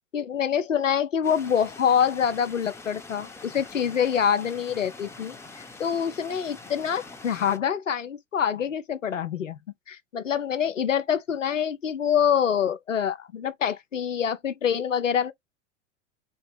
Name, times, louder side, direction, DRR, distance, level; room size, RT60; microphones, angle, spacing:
voice 1, 0.1-9.6 9.9-15.3, left 8 dB, 85° left, 0.5 m, -26 dB
sound 1, 1.2-7.6, left 3 dB, 5° left, 0.8 m, -44 dB
3.8 x 2.8 x 3.1 m
figure-of-eight pair, 85°, 37 cm